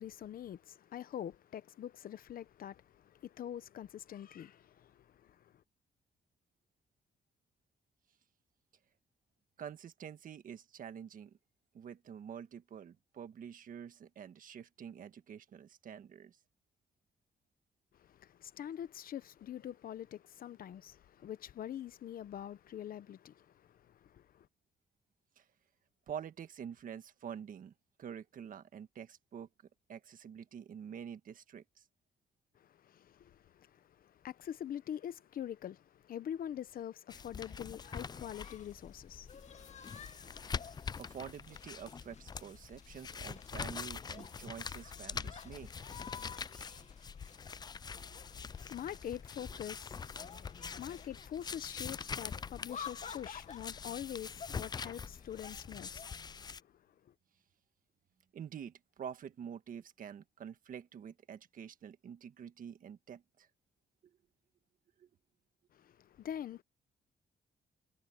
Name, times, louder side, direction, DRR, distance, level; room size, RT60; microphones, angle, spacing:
voice 1, 0.0-5.5 18.0-24.5 32.6-40.4 48.1-56.7 65.7-66.6, left 10 dB, 65° left, 1.0 m, -45 dB
voice 2, 9.6-11.4 11.7-16.4 25.4-25.5 26.1-27.7 28.0-29.5 29.9-31.8 40.6-45.7 48.0-48.2 49.5-49.6 58.3-63.5 65.0-65.1, right 8 dB, 60° right, 1.5 m, -47 dB
sound 1, 37.1-56.6, left 6 dB, 25° left, 0.4 m, -45 dB
sound 2, 37.5-56.5, left 7 dB, 45° left, 1.6 m, -52 dB
cardioid pair, 115°, 16 cm